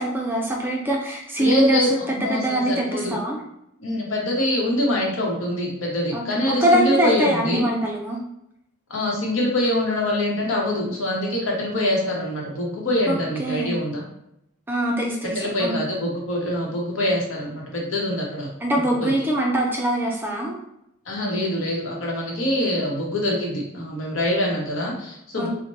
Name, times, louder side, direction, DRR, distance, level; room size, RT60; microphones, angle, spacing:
voice 1, 0.0-3.4 6.1-8.2 13.1-13.8 14.7-15.3 15.6-15.8 18.6-20.6 25.4-25.5, right 1 dB, 10° right, -1 dB, 0.4 m, -23 dB
voice 2, 1.4-3.2 3.8-7.6 8.9-14.0 15.2-18.5 18.7-19.1 21.1-25.5, left 1 dB, 75° left, -2 dB, 0.9 m, -24 dB
4.1 x 2.1 x 3.0 m, 0.81 s
head